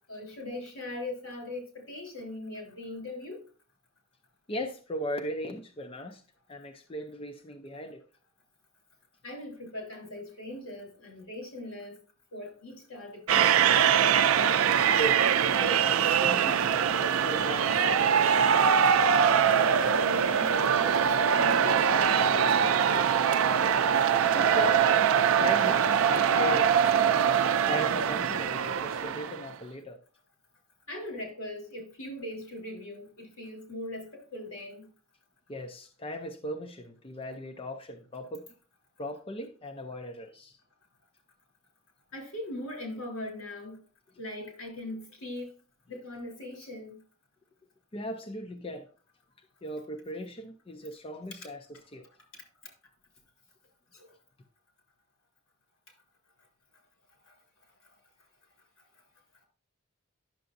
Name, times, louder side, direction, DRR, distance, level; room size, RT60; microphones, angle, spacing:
voice 1, 0.1-3.4 9.2-12.0 12.3-13.9 19.4-23.1 30.9-34.9 42.1-43.8 44.2-45.5 45.9-47.0 51.3-51.5 53.9-54.1 57.3-57.4, left 1 dB, 75° left, 3.6 m, -40 dB
voice 2, 4.5-6.2 6.5-8.0 14.9-19.0 24.3-24.9 25.4-26.7 27.7-30.0 35.5-38.4 39.0-40.6 47.9-48.9 49.4-51.6 51.9-52.1, equal, 25° left, 0.5 m, -38 dB
sound 1, 13.3-29.5, right 7 dB, 70° right, 0.4 m, -23 dB
10.5 x 6.8 x 2.6 m
head